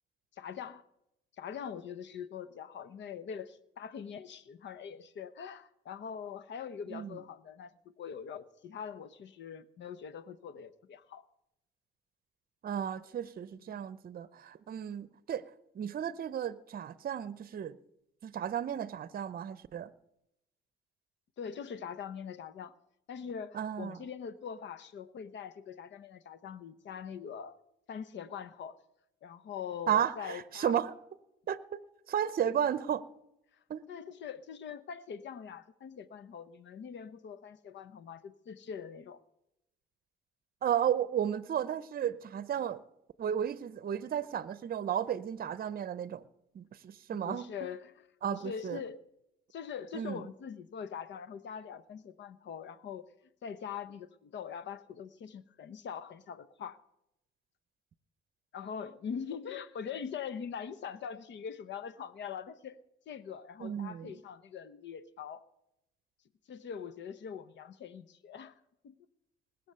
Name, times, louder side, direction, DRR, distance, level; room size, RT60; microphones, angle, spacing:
voice 1, 0.4-0.8 1.4-11.2 13.7-13.8 21.4-22.7 23.1-27.6 27.9-28.7 29.2-30.8 33.9-39.2 47.1-49.0 49.5-53.1 53.4-56.8 58.5-62.8 63.1-65.4 66.5-68.5 68.8-69.0, left 7 dB, 65° left, 1.0 m, -43 dB
voice 2, 12.6-15.4 15.7-17.8 18.2-19.9 23.5-24.0 29.9-30.9 31.5-31.8 32.1-33.0 33.7-33.8 40.6-42.8 43.2-46.2 46.5-47.5 48.2-48.8 49.9-50.2 63.6-64.1, right 9 dB, 50° right, 0.7 m, -33 dB
20.0 x 7.1 x 6.8 m
cardioid pair, 90°, 20 cm